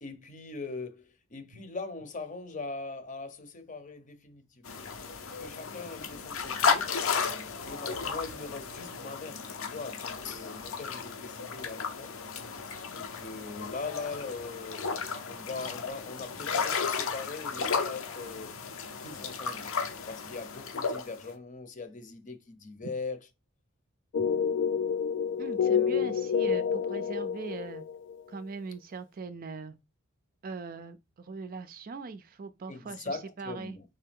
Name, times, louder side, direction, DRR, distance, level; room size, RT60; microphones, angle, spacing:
voice 1, 0.0-4.8 5.4-6.9 7.6-12.1 12.9-14.9 15.3-18.5 19.0-19.7 20.1-23.2 32.7-33.8, left 3 dB, 40° left, 0.7 m, -41 dB
sound 1, 4.6-21.3, left 5 dB, 80° left, 0.7 m, -34 dB
sound 2, 24.1-28.2, left 7 dB, 60° left, 0.3 m, -28 dB
voice 2, 25.4-27.8 28.3-29.8 30.4-33.8, right 4 dB, 45° right, 0.4 m, -40 dB
3.9 x 3.3 x 3.5 m
head